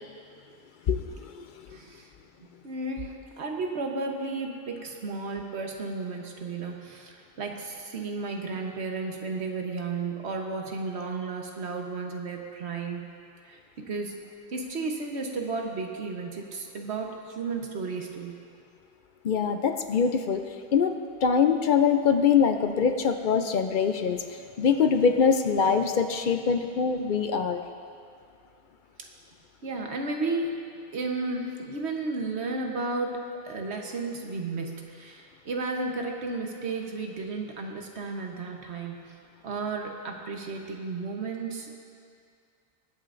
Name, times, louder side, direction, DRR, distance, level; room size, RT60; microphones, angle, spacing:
voice 1, 0.9-1.8 19.2-20.4 20.7-20.9 21.2-27.6, left 6 dB, 55° left, 7 dB, 0.6 m, -24 dB
voice 2, 1.7-2.1 2.6-13.0 13.4-14.1 14.5-18.3 29.0-29.1 29.6-30.5 30.9-39.0 39.4-41.8, right 3 dB, 90° right, 2 dB, 1.3 m, -33 dB
21.0 x 8.7 x 2.5 m, 2.3 s
omnidirectional pair, 1.1 m